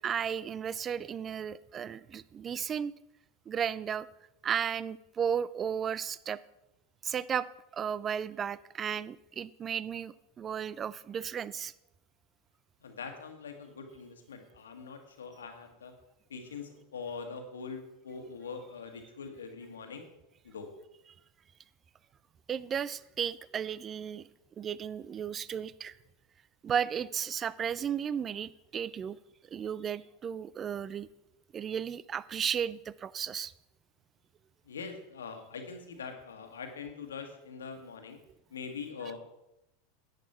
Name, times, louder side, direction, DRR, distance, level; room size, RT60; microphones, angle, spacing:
voice 1, 0.0-2.9 3.5-4.1 4.4-6.4 7.0-7.5 7.7-11.7 22.5-24.2 24.6-26.0 26.6-29.2 29.5-31.1 31.5-33.5, right 8 dB, 30° right, 19 dB, 0.4 m, -34 dB
voice 2, 12.8-15.9 16.3-20.1 20.4-20.7 34.7-38.2 38.5-39.2, left 5 dB, 80° left, 5 dB, 1.6 m, -43 dB
10.5 x 9.0 x 4.3 m, 0.87 s
figure-of-eight pair, 85°, 0 cm